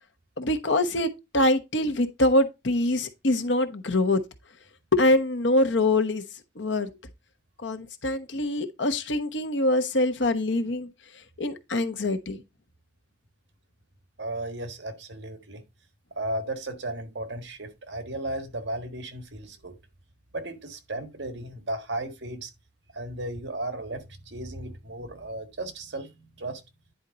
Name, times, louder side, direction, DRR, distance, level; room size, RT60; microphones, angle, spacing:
voice 1, 0.4-4.2 4.9-6.2 6.6-6.9 7.6-10.9 11.4-12.4, left 1 dB, 85° left, 1.1 m, -24 dB
voice 2, 14.2-15.6 16.1-19.8 20.3-22.5 22.9-26.6, right 1 dB, 75° right, 1.5 m, -35 dB
10.0 x 4.4 x 3.9 m
head